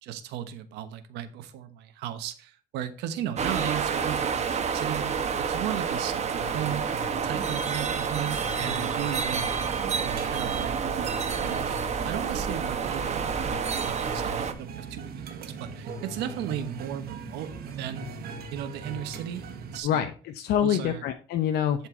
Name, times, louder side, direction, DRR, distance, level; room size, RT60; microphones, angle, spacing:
voice 1, 0.0-6.8 7.2-9.5 10.0-10.8 11.4-13.2 13.5-18.1 18.5-20.1 20.6-21.0, right 10 dB, 90° right, 11 dB, 1.2 m, -36 dB
sound 1, 3.4-14.5, right 6 dB, 40° right, 1.2 m, -29 dB
sound 2, 6.4-19.8, right 4 dB, 65° right, 1.6 m, -40 dB
voice 2, 19.8-21.9, left 9 dB, 75° left, 7 dB, 0.8 m, -26 dB
11.5 x 4.5 x 4.5 m, 0.39 s
cardioid pair, 110°, 17 cm